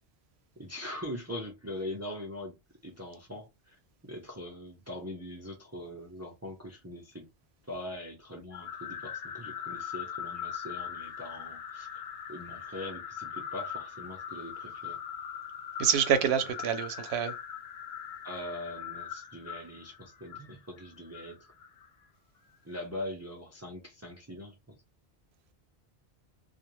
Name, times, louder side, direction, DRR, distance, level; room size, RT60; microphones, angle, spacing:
voice 1, 0.6-2.6 2.8-3.8 4.0-7.3 7.6-11.9 12.3-15.0 18.2-21.5 22.6-24.8, left 1 dB, 20° right, 0.4 m, -42 dB
sound 1, 8.5-21.9, left 8 dB, 75° left, 0.9 m, -41 dB
voice 2, 15.8-17.3, right 8 dB, 85° right, 0.8 m, -27 dB
2.4 x 2.1 x 2.9 m
omnidirectional pair, 1.1 m